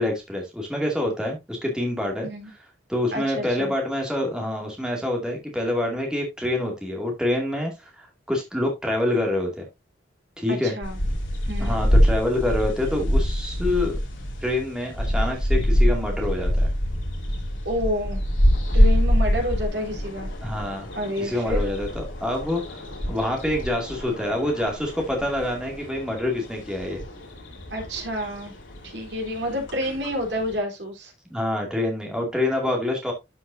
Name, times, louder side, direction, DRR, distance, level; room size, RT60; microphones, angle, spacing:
voice 1, 0.0-2.6 2.9-9.7 10.4-10.8 11.6-14.0 14.4-16.7 20.4-20.9 21.2-27.0 31.3-33.1, left 1 dB, 5° right, 0 dB, 2.1 m, -26 dB
voice 2, 3.1-3.7 10.5-11.0 11.5-11.8 17.7-18.2 18.7-20.3 21.0-21.6 27.7-28.5 28.8-31.1, equal, 65° right, 2 dB, 3.6 m, -29 dB
sound 1, 10.8-30.6, equal, 80° left, 3.1 m, -25 dB
12.0 x 5.7 x 2.6 m, 0.21 s
head